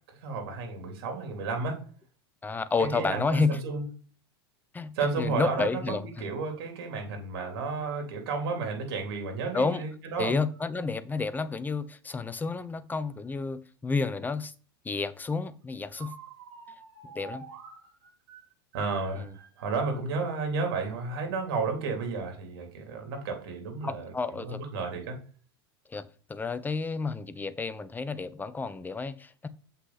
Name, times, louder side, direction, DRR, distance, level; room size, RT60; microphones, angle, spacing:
voice 1, 0.1-1.8 2.8-3.8 4.9-10.4 16.0-18.4 18.7-25.2, right 4 dB, 65° right, 3.4 m, -33 dB
voice 2, 2.4-3.6 4.7-6.1 9.5-9.8 10.2-14.5 14.8-16.1 17.1-17.5 23.8-24.6 25.9-29.5, left 4 dB, 15° left, 0.7 m, -30 dB
7.6 x 5.6 x 4.1 m
hypercardioid pair, 100°, 13 cm